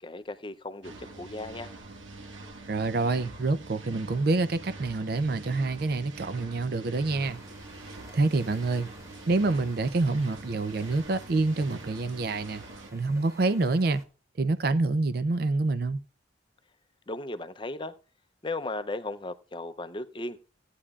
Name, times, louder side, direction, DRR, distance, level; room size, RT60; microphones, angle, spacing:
voice 1, 0.0-1.7 17.1-17.9 18.4-20.4, left 2 dB, 25° left, 0.6 m, -36 dB
sound 1, 0.8-12.9, right 2 dB, 85° right, 1.5 m, -45 dB
voice 2, 2.7-7.4 7.9-8.9 9.3-12.6 12.9-14.0 14.4-16.0, right 3 dB, 50° right, 0.4 m, -27 dB
sound 2, 7.2-14.1, equal, 15° right, 1.7 m, -53 dB
15.5 x 9.8 x 2.4 m
head